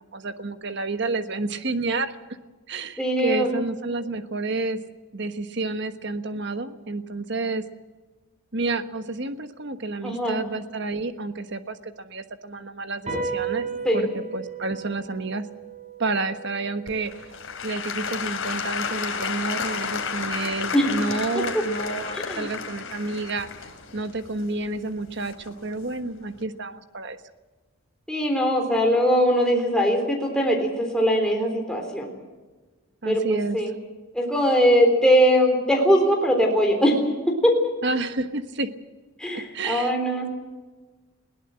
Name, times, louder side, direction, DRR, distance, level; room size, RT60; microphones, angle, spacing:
voice 1, 0.0-2.1 2.7-4.8 5.1-7.6 8.5-13.6 13.9-15.5 16.0-17.1 17.6-23.5 23.9-27.2 33.0-33.6 37.8-38.7 39.5-40.0, right 3 dB, 50° right, 9 dB, 1.3 m, -30 dB
voice 2, 3.0-3.5 10.0-10.4 13.8-14.1 20.7-20.9 22.1-22.5 28.1-32.1 33.1-33.8 34.1-37.0 37.4-37.5 39.2-40.3, equal, 5° left, 0 dB, 3.7 m, -21 dB
sound 1, 13.1-19.8, right 5 dB, 30° right, 6.1 m, -36 dB
Applause / Crowd, 16.9-25.7 26.4-26.5, left 5 dB, 65° left, 3.0 m, -32 dB
21.5 x 18.0 x 7.7 m, 1.3 s
head